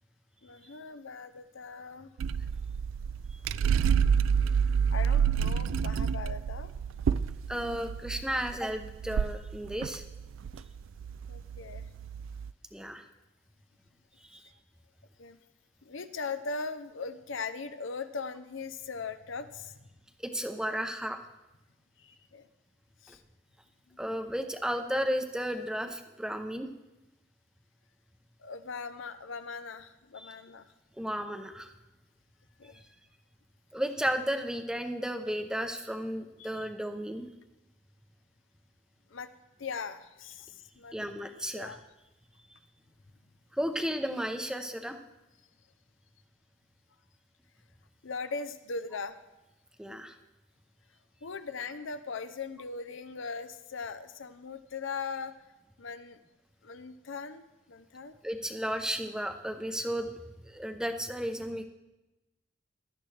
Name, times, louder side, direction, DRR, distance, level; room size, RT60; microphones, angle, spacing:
voice 1, 0.4-2.1 4.9-6.7 11.3-11.9 15.2-15.4 15.8-19.9 22.0-22.5 23.0-23.2 23.9-24.0 28.4-30.7 32.6-32.8 36.4-36.6 39.1-39.3 39.6-40.9 41.5-41.8 48.0-49.2 51.2-55.4 55.8-56.2 56.6-58.1, left 4 dB, 70° left, 11 dB, 0.7 m, -39 dB
sound 1, 2.2-12.5, right 7 dB, 80° right, 0.3 m, -29 dB
voice 2, 7.5-10.0 12.7-13.1 14.2-14.5 20.2-21.2 23.1-23.2 24.0-26.7 30.2-30.4 31.0-31.7 32.6-32.8 33.7-37.3 40.9-41.8 43.5-45.0 49.8-50.2 58.2-60.1 60.4-61.7, equal, 5° right, 6 dB, 0.7 m, -34 dB
16.5 x 12.0 x 3.3 m, 1.0 s
head